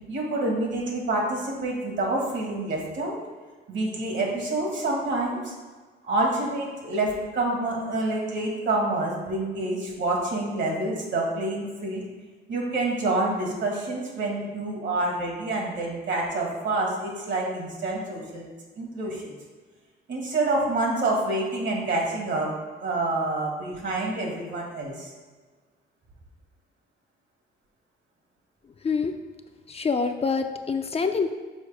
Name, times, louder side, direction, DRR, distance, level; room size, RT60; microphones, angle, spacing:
voice 1, 0.1-3.2 3.7-5.5 6.0-12.0 12.5-18.5 18.8-19.2 20.1-22.5 22.8-25.1, right 2 dB, 70° right, -1 dB, 1.8 m, -27 dB
voice 2, 29.7-31.3, left 5 dB, 30° left, 6 dB, 0.4 m, -26 dB
6.3 x 4.7 x 3.4 m, 1.4 s
cardioid pair, 90°, 20 cm